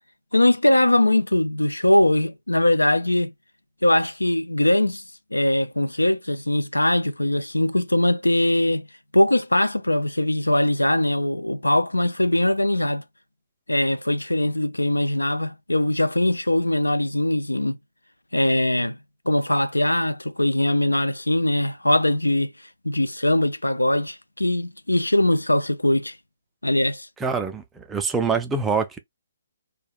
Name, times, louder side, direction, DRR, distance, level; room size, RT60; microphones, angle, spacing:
voice 1, 0.3-3.3 3.8-5.0 5.3-8.9 9.1-13.0 13.7-17.8 18.3-19.0 19.3-22.5 22.8-26.2 26.6-27.1, left 1 dB, 90° left, 0.4 m, -21 dB
voice 2, 27.2-29.0, right 5 dB, 10° right, 0.4 m, -25 dB
2.3 x 2.2 x 3.2 m
figure-of-eight pair, 135°, 0 cm